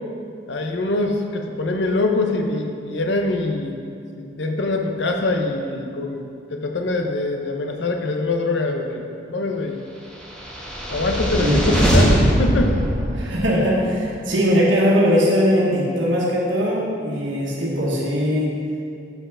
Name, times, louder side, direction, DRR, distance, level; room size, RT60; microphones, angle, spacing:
voice 1, 0.5-3.8 4.2-6.2 6.5-9.8 10.9-12.8 13.5-13.6, left 2 dB, 65° left, 4 dB, 0.8 m, -23 dB
sound 1, 10.3-13.7, equal, 5° left, 1.4 m, -20 dB
voice 2, 13.1-18.5, equal, 85° right, -4 dB, 1.4 m, -20 dB
7.3 x 5.6 x 5.5 m, 2.4 s
head